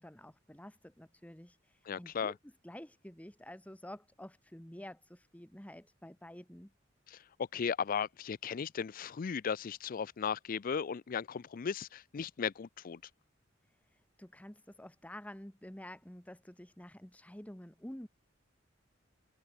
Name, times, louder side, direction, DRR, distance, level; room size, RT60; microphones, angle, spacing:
voice 1, 0.0-6.7 13.7-18.1, left 1 dB, 5° left, 1.3 m, -50 dB
voice 2, 1.9-2.3 7.1-13.0, left 6 dB, 45° left, 0.4 m, -36 dB
head